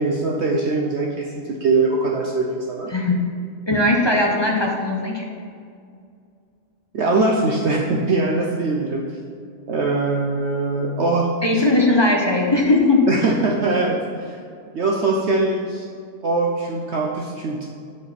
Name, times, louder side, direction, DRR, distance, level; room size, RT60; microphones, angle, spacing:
voice 1, 0.0-2.9 6.9-9.0 9.7-11.3 13.1-14.4 14.7-15.8 16.2-17.7, right 3 dB, 55° right, -1 dB, 0.9 m, -22 dB
voice 2, 2.9-3.2 3.7-5.3 11.4-13.1, left 2 dB, 30° left, -1 dB, 0.5 m, -18 dB
8.5 x 5.2 x 4.2 m, 2.2 s
omnidirectional pair, 1.6 m